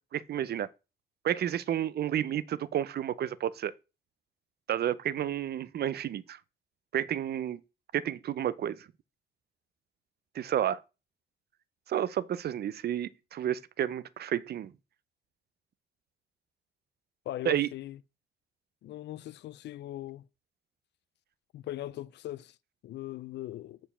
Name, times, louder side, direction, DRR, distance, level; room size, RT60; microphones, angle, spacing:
voice 1, 0.1-0.7 1.2-3.7 4.7-6.4 6.9-7.6 7.9-8.9 10.3-10.8 11.9-14.7 17.5-17.7, right 10 dB, 65° right, 0.5 m, -31 dB
voice 2, 17.3-18.0 18.8-20.2 21.5-22.6 22.8-23.8, left 14 dB, 75° left, 0.4 m, -40 dB
7.0 x 4.5 x 5.6 m
cardioid pair, 70°, 18 cm